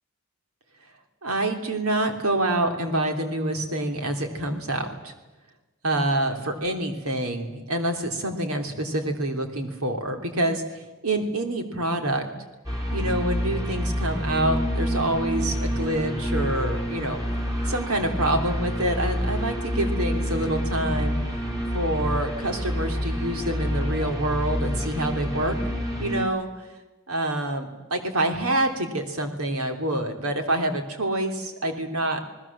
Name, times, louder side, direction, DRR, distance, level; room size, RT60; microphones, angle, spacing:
voice 1, 1.2-5.1 5.8-12.3 12.9-17.2 17.6-21.4 21.7-25.6 26.0-26.5 27.1-32.2, right 1 dB, 80° right, 5 dB, 3.2 m, -27 dB
sound 1, 12.6-26.2, equal, 15° right, 4.0 m, -28 dB
28.5 x 19.5 x 7.4 m, 1.2 s
head